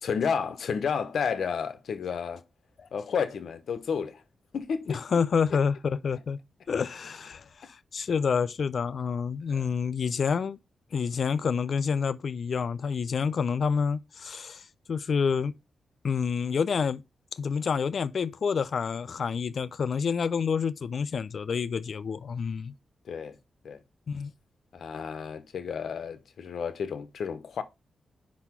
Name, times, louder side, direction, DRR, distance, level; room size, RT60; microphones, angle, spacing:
voice 1, 0.0-2.4 2.9-4.2 4.5-5.0 9.5-9.7 23.1-23.4 23.6-23.8 24.7-27.6, left 6 dB, 70° left, 0.8 m, -31 dB
voice 2, 4.9-6.4 6.7-10.6 10.9-14.6 14.9-15.5 16.0-17.0 17.3-22.7 24.1-24.3, left 6 dB, 55° left, 0.4 m, -28 dB
5.4 x 4.1 x 5.7 m
wide cardioid pair, 120°, 0 cm